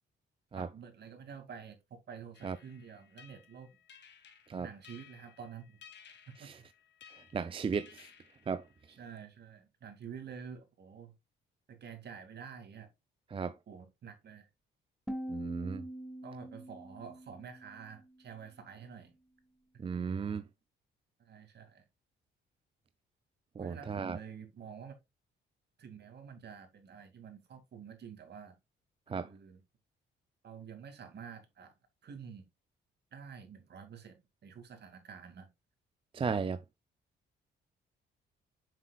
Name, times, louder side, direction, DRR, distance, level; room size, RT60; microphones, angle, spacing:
voice 1, 0.5-3.8 4.6-5.8 6.2-6.5 8.9-11.1 11.7-12.9 13.7-14.5 16.2-19.2 21.2-21.8 23.6-24.9 25.8-28.6 29.1-29.6 30.4-31.7 32.0-32.4 33.1-35.5, right 7 dB, 55° right, 2.4 m, -49 dB
sound 1, 2.3-9.0, left 8 dB, 65° left, 1.8 m, -58 dB
voice 2, 7.1-8.1 8.5-8.6 13.3-13.5 15.3-15.8 19.8-20.4 23.6-24.2 29.1-29.3 36.1-36.6, right 5 dB, 25° right, 0.4 m, -35 dB
sound 2, 15.1-18.1, right 1 dB, ahead, 1.6 m, -43 dB
7.5 x 6.0 x 2.4 m
cardioid pair, 90°, 20 cm